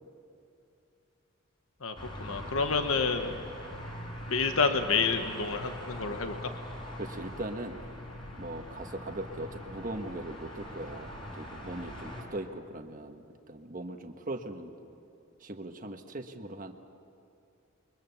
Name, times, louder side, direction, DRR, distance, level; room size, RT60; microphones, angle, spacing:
voice 1, 1.8-3.3 4.3-6.5, left 4 dB, 75° left, 7 dB, 1.1 m, -29 dB
sound 1, 1.9-12.2, equal, 25° left, 5.4 m, -42 dB
voice 2, 7.0-7.8 8.4-14.7 15.4-16.7, right 1 dB, 40° right, 5 dB, 1.5 m, -40 dB
29.0 x 23.0 x 7.1 m, 2.6 s
head